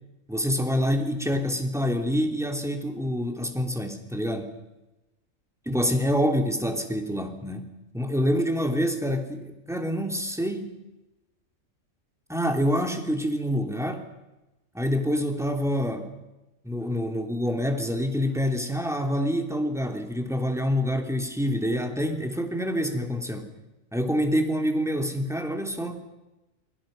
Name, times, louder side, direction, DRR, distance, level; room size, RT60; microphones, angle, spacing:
voice 1, 0.3-4.5 5.6-10.7 12.3-14.1 14.7-16.1 16.6-23.5 23.9-26.0, equal, ahead, 4 dB, 2.9 m, -26 dB
28.5 x 23.5 x 5.3 m, 1.0 s
omnidirectional pair, 1.4 m